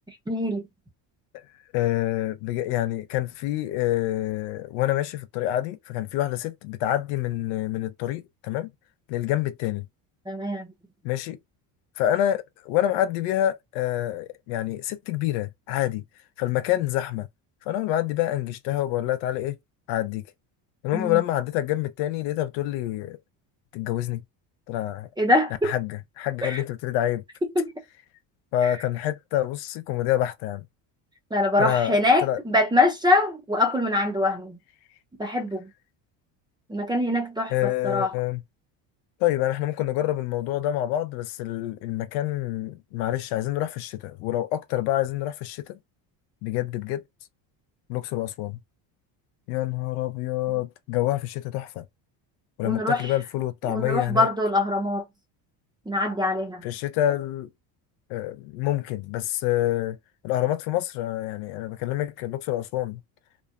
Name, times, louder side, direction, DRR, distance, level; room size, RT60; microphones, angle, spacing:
voice 1, 0.3-0.7 10.3-10.7 20.9-21.2 25.2-25.7 26.4-26.6 27.6-27.7 28.6-28.8 31.3-34.6 35.2-35.7 36.7-38.1 52.6-53.1 53.7-55.0 55.9-56.7, left 2 dB, 10° right, 0.5 m, -24 dB
voice 2, 1.7-8.7 9.1-9.9 11.0-11.4 12.0-16.0 16.4-17.3 17.7-19.6 19.9-20.2 20.8-23.2 23.7-24.2 24.7-25.1 25.6-27.2 28.5-30.6 31.6-32.4 37.5-38.4 39.2-45.8 46.4-47.0 47.9-48.6 49.5-51.8 52.6-54.3 56.6-57.5 58.1-60.0 60.2-63.0, left 13 dB, 75° left, 0.6 m, -27 dB
3.0 x 2.0 x 2.3 m
supercardioid pair, 95°, 49 cm